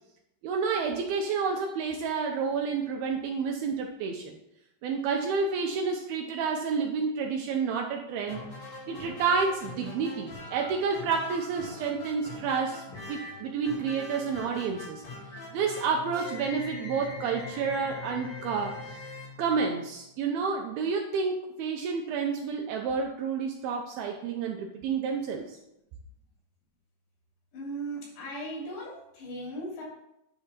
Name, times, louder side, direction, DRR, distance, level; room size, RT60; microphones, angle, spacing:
voice 1, 0.4-4.4 4.8-8.4 8.9-15.0 15.5-19.0 19.4-25.6, right 5 dB, 80° right, 2 dB, 2.2 m, -30 dB
sound 1, 8.2-20.1, left 2 dB, 45° left, 1.8 m, -42 dB
voice 2, 27.5-29.8, right 1 dB, 80° left, -4 dB, 5.0 m, -37 dB
9.6 x 3.4 x 5.8 m, 0.84 s
omnidirectional pair, 4.8 m